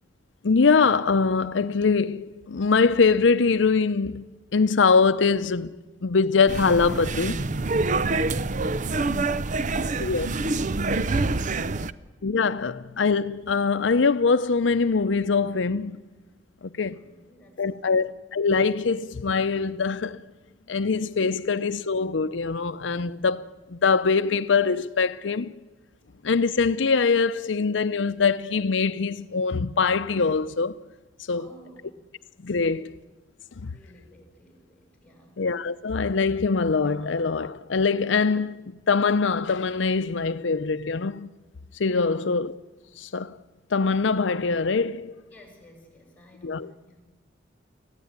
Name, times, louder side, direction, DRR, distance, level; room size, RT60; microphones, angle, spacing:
voice 1, 0.4-4.2 4.5-5.8 6.0-7.5 10.0-10.3 12.2-16.0 16.6-17.0 17.6-20.2 20.7-25.5 26.2-30.8 31.3-31.5 32.4-32.8 33.6-33.7 35.4-41.3 41.8-42.5 43.0-43.4 43.7-45.2 46.4-46.7, left 4 dB, 85° left, 0.6 m, -23 dB
sound 1, 6.5-11.9, right 3 dB, 45° right, 0.6 m, -26 dB
voice 2, 8.9-12.0 16.9-18.0 31.3-32.0 32.5-32.9 33.6-35.4 42.0-42.3 45.2-47.0, equal, 10° left, 6.5 m, -53 dB
26.5 x 15.5 x 9.6 m
head